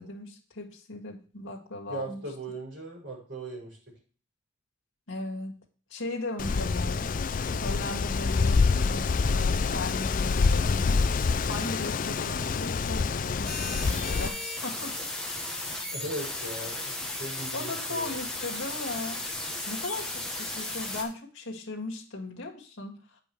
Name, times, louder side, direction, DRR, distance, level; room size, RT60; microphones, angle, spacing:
voice 1, 0.0-2.2 5.1-5.6 5.9-7.1 7.6-11.0 11.5-15.1 17.5-19.2 19.7-23.0, left 2 dB, 65° left, 0 dB, 2.0 m, -37 dB
voice 2, 1.9-3.9 15.9-16.9 17.2-18.1, right 1 dB, 55° right, -1 dB, 5.2 m, -38 dB
Wind, 6.4-14.3, left 4 dB, 40° left, 0.4 m, -26 dB
sound 1, 13.4-21.0, left 2 dB, 5° left, 1.2 m, -35 dB
8.5 x 5.5 x 4.5 m, 0.39 s
head